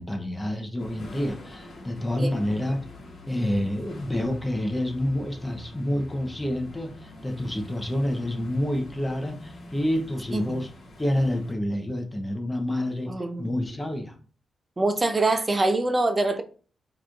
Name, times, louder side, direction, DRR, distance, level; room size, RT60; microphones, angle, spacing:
voice 1, 0.0-2.8 3.3-10.7 11.0-13.1 13.4-14.1, left 1 dB, 10° left, 0.7 m, -28 dB
sound 1, 0.8-11.5, left 1 dB, 65° left, 1.1 m, -45 dB
voice 2, 13.1-13.4 14.8-16.4, right 2 dB, 25° right, 0.5 m, -24 dB
4.6 x 3.0 x 2.4 m
wide cardioid pair, 120°, 0 cm